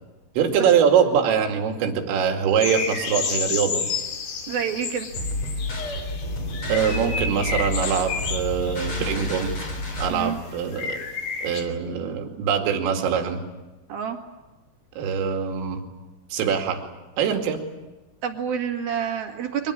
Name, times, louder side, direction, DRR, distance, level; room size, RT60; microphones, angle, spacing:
voice 1, 0.4-3.9 6.7-9.5 10.0-11.0 11.4-13.4 15.0-15.8 16.3-16.8 17.2-17.6, right 7 dB, 80° right, 4 dB, 5.0 m, -23 dB
sound 1, 2.6-11.6, left 5 dB, 55° left, 4.3 m, -31 dB
voice 2, 4.5-5.1 10.1-10.4 13.9-14.2 18.2-19.7, right 8 dB, 55° right, 4 dB, 3.3 m, -28 dB
sound 2, 5.1-10.1, left 2 dB, 35° left, 6.1 m, -30 dB
24.5 x 19.5 x 9.9 m, 1.1 s
omnidirectional pair, 5.8 m